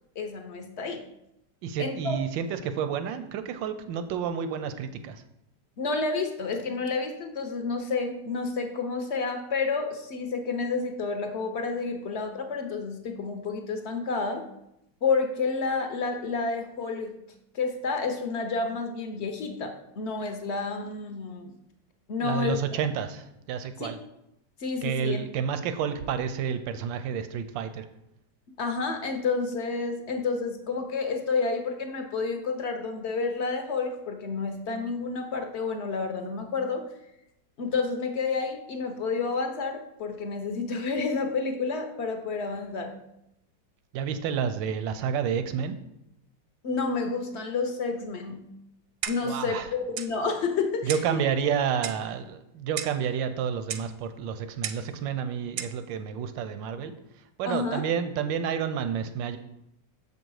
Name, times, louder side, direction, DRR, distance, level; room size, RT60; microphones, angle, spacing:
voice 1, 0.2-1.0 1.8-2.2 5.8-14.4 15.0-17.2 17.5-21.5 22.1-22.8 23.8-23.9 24.6-25.2 28.6-36.8 37.6-43.0 46.6-48.4 49.1-51.2 57.4-57.8, left 4 dB, 60° left, 5 dB, 0.7 m, -30 dB
voice 2, 1.6-5.2 22.2-24.0 24.8-27.9 43.9-45.8 49.2-49.7 50.8-56.9 57.4-59.4, right 7 dB, 85° right, 10 dB, 1.3 m, -30 dB
Clock, 49.0-49.4 50.0-50.1 50.9-51.2 51.8-52.1 52.8-53.0 53.7-53.9 54.6-54.9 55.6-55.8, right 9 dB, 70° right, 0.9 m, -35 dB
7.2 x 5.3 x 4.7 m, 0.83 s
omnidirectional pair, 2.0 m